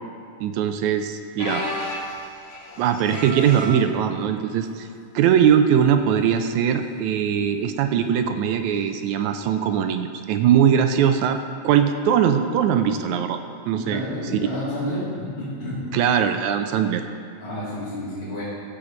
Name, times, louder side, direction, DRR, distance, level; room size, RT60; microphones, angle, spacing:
voice 1, 0.4-1.6 2.8-4.9 5.2-11.4 11.6-13.4 13.7-14.0 15.9-17.0, right 8 dB, 80° right, 7 dB, 1.9 m, -20 dB
sound 1, 1.4-3.9 4.6-4.9 5.2-5.3 6.2-6.5 8.1-8.2, left 1 dB, 75° left, 3.2 m, -32 dB
voice 2, 13.8-15.8 17.4-18.4, left 1 dB, 45° left, -12 dB, 3.6 m, -30 dB
15.0 x 5.1 x 7.3 m, 2.1 s
omnidirectional pair, 3.6 m